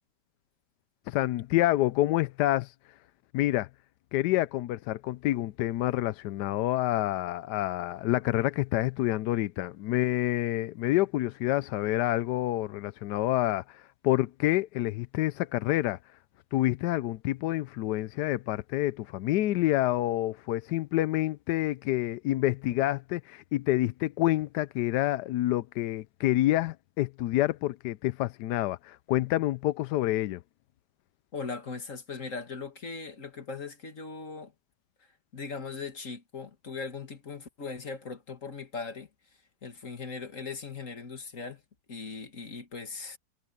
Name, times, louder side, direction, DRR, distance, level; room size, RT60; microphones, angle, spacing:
voice 1, 1.1-2.7 3.3-3.7 4.1-16.0 16.5-30.4, left 15 dB, 80° left, 1.2 m, -28 dB
voice 2, 31.3-34.5 35.3-39.1 39.6-41.6 41.9-43.2, left 4 dB, 50° left, 2.2 m, -39 dB
omnidirectional pair, 1.8 m